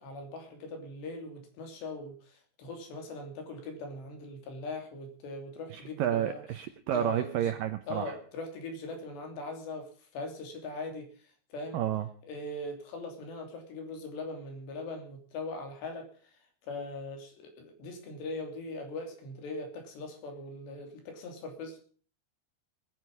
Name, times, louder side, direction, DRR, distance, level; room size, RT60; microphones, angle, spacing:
voice 1, 0.0-6.4 6.9-7.5 7.9-11.8 12.2-16.3 16.7-21.8, left 2 dB, 75° left, 4 dB, 5.2 m, -41 dB
voice 2, 5.7-8.2 11.7-12.1, right 11 dB, 75° right, 9 dB, 2.0 m, -30 dB
20.5 x 9.6 x 5.4 m, 0.42 s
omnidirectional pair, 5.0 m